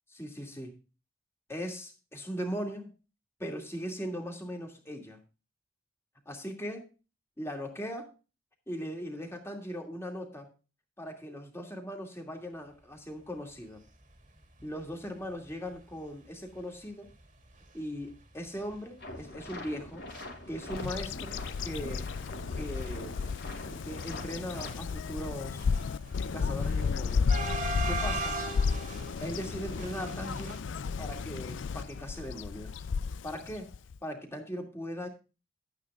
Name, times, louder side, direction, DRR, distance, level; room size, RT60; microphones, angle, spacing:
voice 1, 0.1-0.7 1.5-2.9 3.4-5.2 6.3-6.9 7.4-8.1 8.7-10.5 11.0-13.8 14.6-17.1 17.7-20.1 20.5-22.1 22.5-23.2 23.8-25.7 26.3-27.4 27.9-28.4 29.2-30.6 31.0-32.8 33.2-33.7 34.0-35.1, equal, 15° left, 2 dB, 2.5 m, -39 dB
sound 1, 14.6-14.8 15.3-15.4 15.6-15.8 16.5-16.6 17.1-17.3 17.5-17.6 18.0-20.2 20.5-21.2 21.5-30.6, right 2 dB, 40° right, 2.0 m, -40 dB
sound 2, 19.0-24.7, left 1 dB, 55° left, 2.7 m, -44 dB
Bird vocalization bird call bird song, 20.7-34.0, left 5 dB, 75° left, 0.4 m, -33 dB
11.5 x 9.3 x 3.6 m, 0.32 s
head